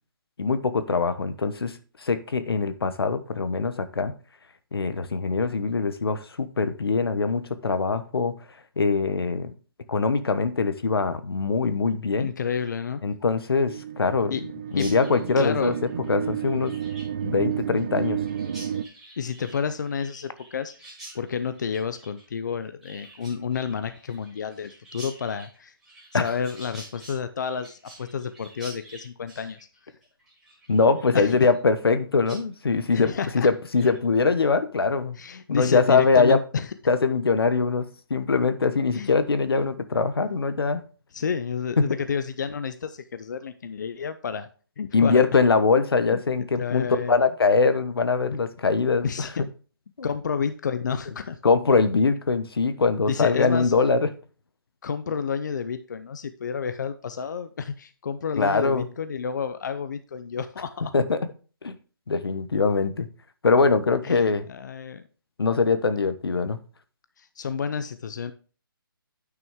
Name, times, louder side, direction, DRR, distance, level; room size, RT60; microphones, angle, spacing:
voice 1, 0.4-4.1 4.7-8.3 8.8-9.5 9.9-12.3 13.0-14.3 14.7-15.7 16.1-16.7 17.2-18.2 26.1-26.3 30.7-35.2 35.5-36.4 36.9-40.8 41.8-41.9 44.9-49.3 50.0-50.1 51.4-54.1 58.4-58.9 60.9-61.2 61.6-61.8 62.1-63.1 63.4-64.4 65.4-66.6, left 4 dB, 85° left, 11 dB, 1.1 m, -22 dB
voice 2, 12.2-13.0 14.3-14.4 14.8-14.9 15.4-15.7 19.2-25.7 26.1-29.6 31.1-31.5 32.9-33.5 35.2-36.7 38.9-39.1 41.1-44.5 44.8-45.2 46.1-47.3 49.0-49.3 50.0-51.4 53.1-53.7 54.8-60.9 64.0-65.0 67.2-68.3, left 6 dB, 50° left, 11 dB, 0.6 m, -30 dB
sound 1, 13.7-18.8, right 9 dB, 30° right, 0.3 m, -31 dB
Chirp tweet, 14.7-32.0 32.3-32.4 32.7-33.1 33.5-34.0, right 1 dB, 5° right, 2.6 m, -48 dB
9.4 x 6.0 x 3.6 m, 0.39 s
hypercardioid pair, 170°, 12 cm